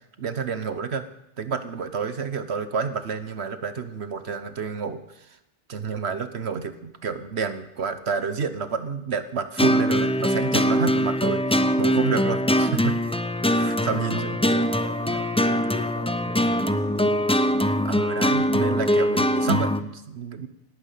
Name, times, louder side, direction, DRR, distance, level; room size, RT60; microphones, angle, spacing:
voice 1, 0.2-1.1 1.4-5.4 5.7-12.9 13.5-14.4 15.1-15.2 17.8-20.5, right 6 dB, 65° right, 11 dB, 1.3 m, -29 dB
sound 1, 9.6-19.8, equal, 5° left, 0.5 m, -22 dB
voice 2, 13.8-17.8, left 2 dB, 50° left, -4 dB, 7.9 m, -39 dB
18.0 x 9.7 x 8.3 m, 0.86 s
omnidirectional pair, 1.2 m